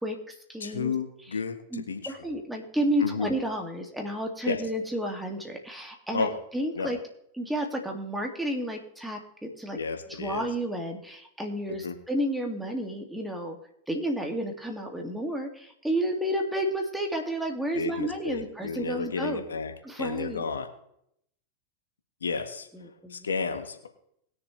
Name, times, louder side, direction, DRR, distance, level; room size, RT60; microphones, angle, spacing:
voice 1, 0.0-0.9 1.7-7.0 7.3-9.8 10.1-13.6 13.9-19.4 19.8-20.4 22.7-23.3, equal, 5° right, 2 dB, 2.3 m, -31 dB
voice 2, 0.6-2.1 3.0-3.3 4.4-4.6 6.1-6.4 6.7-6.9 9.7-10.5 11.7-11.9 17.7-19.7 20.0-20.7 22.2-22.7 23.1-23.9, left 4 dB, 85° left, 7 dB, 1.4 m, -32 dB
20.5 x 6.9 x 3.3 m, 0.73 s
hypercardioid pair, 95°, 0 cm